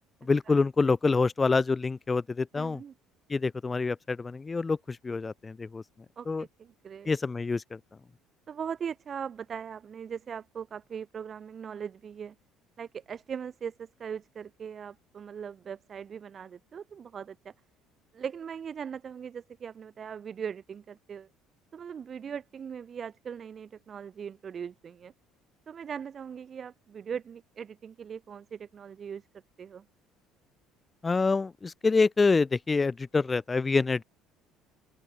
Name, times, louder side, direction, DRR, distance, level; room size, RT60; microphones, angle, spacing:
voice 1, 0.2-2.8 3.3-5.8 6.3-6.4 7.1-7.8 31.0-34.0, left 4 dB, 15° left, 0.8 m, -26 dB
voice 2, 2.5-2.9 6.2-7.1 8.5-12.3 12.8-17.5 18.1-21.3 21.7-25.1 25.7-29.3 29.6-29.8, right 7 dB, 30° right, 4.6 m, -40 dB
open air
cardioid pair, 145°, 0 cm